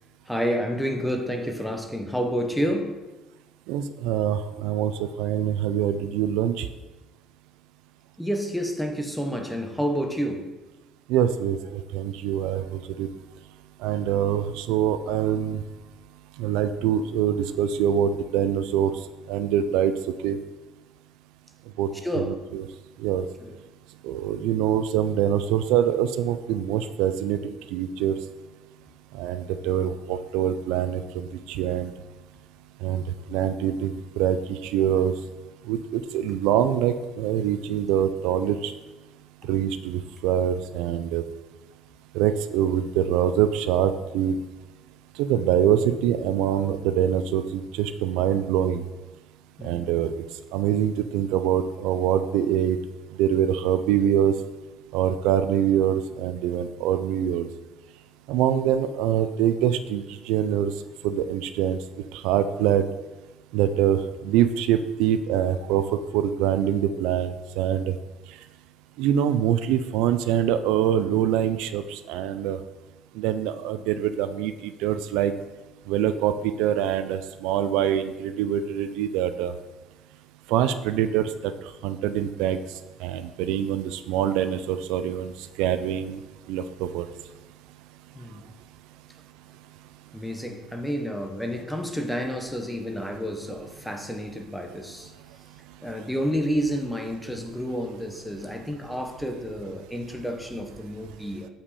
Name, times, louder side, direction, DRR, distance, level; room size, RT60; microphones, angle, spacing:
voice 1, 0.3-3.0 8.2-10.5 22.0-22.3 23.4-23.5 49.6-49.9 88.1-88.4 90.1-95.1 95.8-101.5, equal, ahead, 3 dB, 0.9 m, -29 dB
voice 2, 3.7-6.7 11.1-13.1 13.8-15.6 16.4-18.9 19.3-19.9 20.2-20.4 21.8-21.9 22.2-22.7 23.0-23.2 24.0-28.2 29.1-31.9 32.8-33.0 33.3-35.1 35.7-38.7 39.5-41.2 42.1-44.4 45.2-48.8 49.6-50.1 50.5-52.8 53.2-54.3 54.9-57.5 58.3-60.7 61.0-61.8 62.2-62.8 63.5-64.0 64.2-67.9 69.0-72.6 73.2-75.3 75.9-79.5 80.5-81.5 81.8-82.6 83.0-85.3 85.6-86.2 86.5-87.0, right 10 dB, 80° right, 10 dB, 0.4 m, -24 dB
7.1 x 5.7 x 4.2 m, 1.2 s
cardioid pair, 125°, 0 cm